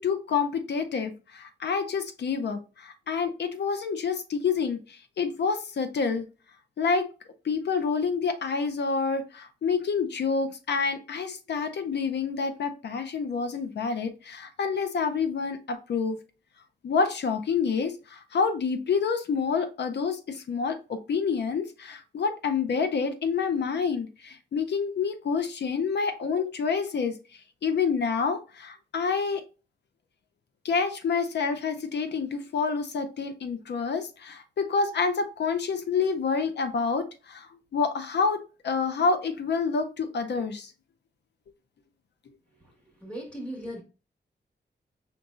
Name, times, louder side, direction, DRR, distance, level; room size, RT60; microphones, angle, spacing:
voice 1, 0.0-6.3 6.8-7.1 7.4-16.2 16.8-27.2 27.6-29.4 30.6-40.7, left 5 dB, 65° left, 0.5 m, -28 dB
voice 2, 43.0-43.8, equal, 5° left, 1.5 m, -37 dB
5.2 x 3.9 x 2.4 m
wide cardioid pair, 175°, 19 cm